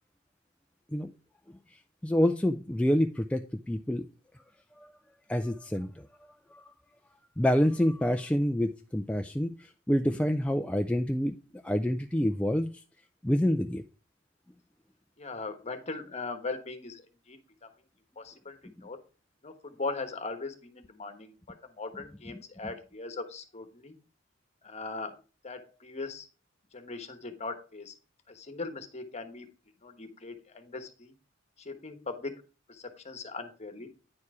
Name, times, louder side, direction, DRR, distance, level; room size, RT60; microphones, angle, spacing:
voice 1, 2.0-4.0 4.8-4.9 5.3-6.1 6.5-6.6 7.4-11.3 11.6-12.7 13.2-13.8 22.3-22.7, equal, 5° left, 0.3 m, -27 dB
voice 2, 15.2-17.0 17.3-17.4 18.2-19.0 19.4-21.3 21.8-23.9 24.6-25.2 25.4-26.3 26.7-27.9 28.3-29.5 29.8-31.1 31.6-32.4 32.7-33.9, left 3 dB, 35° left, 1.2 m, -39 dB
9.7 x 4.6 x 4.8 m
head